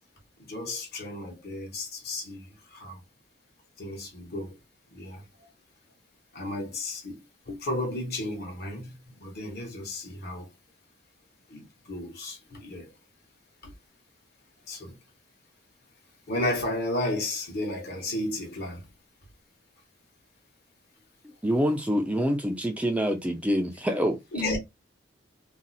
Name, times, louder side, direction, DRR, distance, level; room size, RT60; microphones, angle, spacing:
voice 1, 0.5-3.0 3.8-4.6 4.9-5.2 6.3-7.2 7.5-10.5 11.5-12.9 13.6-13.7 14.7-15.0 16.3-18.8 24.3-24.6, left 1 dB, 55° left, 1.1 m, -33 dB
voice 2, 21.4-24.2, equal, 5° right, 0.4 m, -26 dB
2.6 x 2.0 x 3.9 m
head